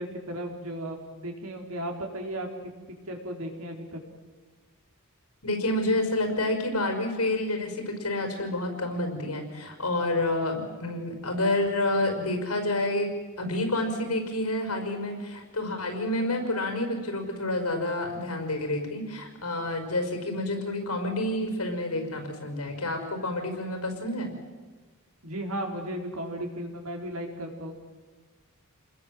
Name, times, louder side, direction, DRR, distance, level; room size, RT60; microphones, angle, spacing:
voice 1, 0.0-2.5 3.1-4.0 25.2-27.7, right 1 dB, 75° right, 2 dB, 4.4 m, -35 dB
voice 2, 5.4-13.1 13.4-24.3, left 1 dB, 90° left, 5 dB, 5.5 m, -29 dB
28.5 x 21.0 x 7.8 m, 1.4 s
head